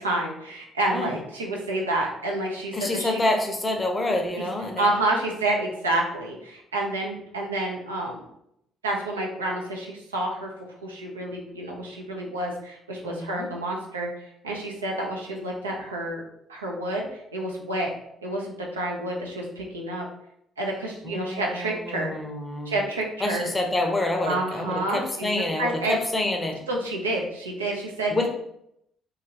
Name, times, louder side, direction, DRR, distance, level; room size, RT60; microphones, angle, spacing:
voice 1, 0.0-3.2 4.8-8.2 8.8-16.2 16.5-17.9 18.2-20.0 20.6-22.1 22.7-23.5 24.2-25.3 25.6-25.9 26.7-28.1, right 1 dB, 80° right, -1 dB, 0.5 m, -29 dB
voice 2, 2.7-4.9 13.0-13.5 21.0-22.8 23.2-26.6 28.1-28.3, left 2 dB, 20° left, 3 dB, 0.6 m, -27 dB
3.0 x 2.4 x 2.8 m, 0.77 s
figure-of-eight pair, 45°, 0 cm